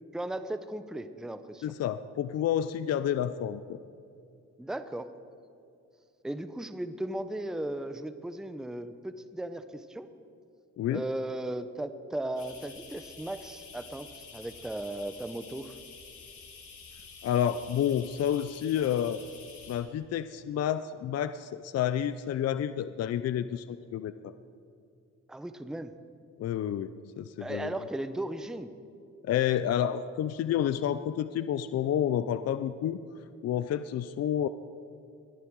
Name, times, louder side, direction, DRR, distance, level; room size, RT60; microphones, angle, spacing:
voice 1, 0.1-1.7 4.6-5.1 6.2-10.1 10.9-15.7 25.3-25.9 27.4-28.7, right 1 dB, ahead, 10 dB, 0.7 m, -36 dB
voice 2, 1.6-3.8 10.8-11.0 17.2-19.2 19.7-24.3 26.4-27.7 29.2-33.0 33.4-34.5, left 10 dB, 55° left, 13 dB, 0.5 m, -29 dB
sound 1, 12.4-19.8, left 5 dB, 80° left, 3.2 m, -49 dB
20.5 x 11.0 x 4.6 m, 2.5 s
cardioid pair, 90°, 30 cm